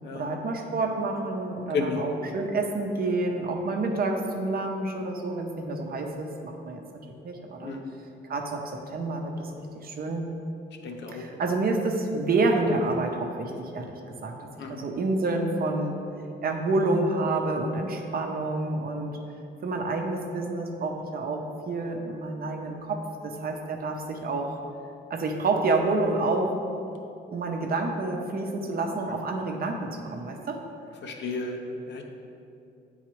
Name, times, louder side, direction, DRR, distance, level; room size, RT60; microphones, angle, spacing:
voice 1, 0.1-6.8 7.1-7.8 8.2-10.2 11.1-16.0 16.4-19.2 19.6-24.6 25.1-26.6 27.3-30.6, right 2 dB, 50° right, 2 dB, 0.7 m, -28 dB
voice 2, 1.7-2.2 7.6-7.8 10.8-11.2 14.6-14.8 29.1-29.2 31.0-32.0, left 4 dB, 65° left, 3 dB, 0.7 m, -32 dB
8.2 x 3.9 x 3.0 m, 2.6 s
cardioid pair, 90°, 20 cm